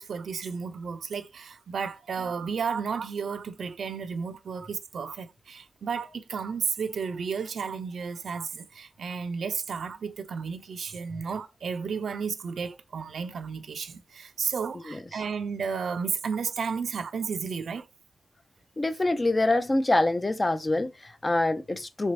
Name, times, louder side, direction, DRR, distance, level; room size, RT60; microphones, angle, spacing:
voice 1, 0.0-17.9, right 5 dB, 80° right, 0.4 m, -33 dB
voice 2, 18.8-22.1, left 2 dB, 20° left, 0.4 m, -25 dB
3.3 x 3.3 x 2.6 m
wide cardioid pair, 135°, 0 cm